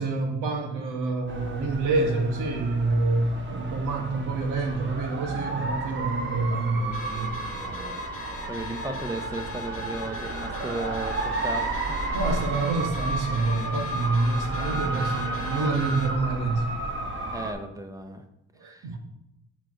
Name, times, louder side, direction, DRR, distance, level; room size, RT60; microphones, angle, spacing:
voice 1, 0.0-7.4 12.1-16.7 18.6-19.0, right 3 dB, 85° right, 3 dB, 1.5 m, -27 dB
sound 1, 1.3-17.5, right 2 dB, 40° right, 1.4 m, -32 dB
Car / Alarm, 6.9-16.2, left 7 dB, 50° left, 0.7 m, -43 dB
voice 2, 7.5-8.1 8.4-11.9 17.3-18.2 18.6-18.9, right 2 dB, 10° right, 6 dB, 0.9 m, -35 dB
7.3 x 3.9 x 6.4 m, 0.86 s
cardioid pair, 90°, 30 cm